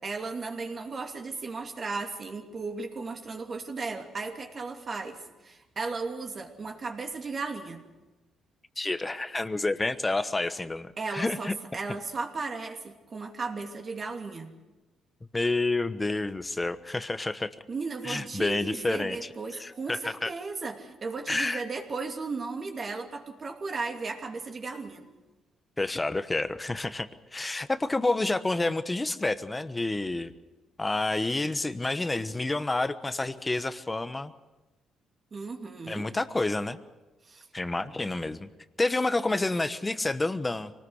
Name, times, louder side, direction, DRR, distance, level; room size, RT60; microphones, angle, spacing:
voice 1, 0.0-7.8 11.0-14.5 17.7-25.0 35.3-36.1 37.3-37.5, right 4 dB, 40° right, 3 dB, 2.7 m, -35 dB
voice 2, 8.8-11.5 15.3-17.5 18.0-19.3 19.6-20.3 21.3-21.6 25.8-30.3 30.8-34.3 35.9-36.8 37.5-38.5 38.8-40.7, left 2 dB, 20° left, 11 dB, 1.1 m, -29 dB
24.5 x 19.5 x 6.5 m, 1.1 s
cardioid pair, 90°, 0 cm